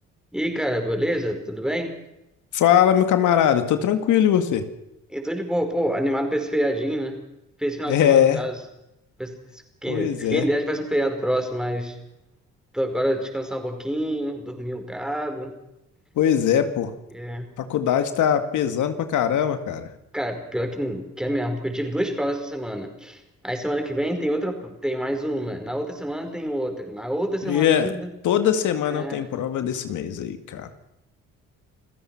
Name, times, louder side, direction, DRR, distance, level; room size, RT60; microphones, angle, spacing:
voice 1, 0.3-1.9 5.1-7.2 7.6-8.5 9.2-12.0 12.7-15.5 17.1-17.5 20.1-28.1 28.9-29.3, equal, ahead, 5 dB, 5.0 m, -27 dB
voice 2, 2.5-4.7 7.9-8.4 9.9-10.5 16.2-16.9 17.6-19.9 27.4-27.9 28.2-30.8, left 9 dB, 80° left, 8 dB, 2.1 m, -21 dB
28.5 x 15.5 x 6.0 m, 0.87 s
cardioid pair, 90°, 30 cm